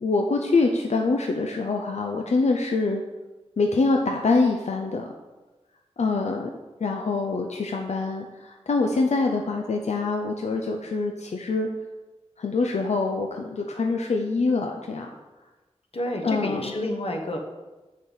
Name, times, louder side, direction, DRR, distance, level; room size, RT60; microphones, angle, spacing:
voice 1, 0.0-3.0 3.6-5.1 6.0-6.5 6.8-11.7 12.4-15.1 16.2-16.7, left 3 dB, 85° left, 3 dB, 0.6 m, -25 dB
voice 2, 15.9-17.4, left 1 dB, 60° left, 2 dB, 1.1 m, -29 dB
7.3 x 6.4 x 4.0 m, 1.2 s
wide cardioid pair, 80°, 11 cm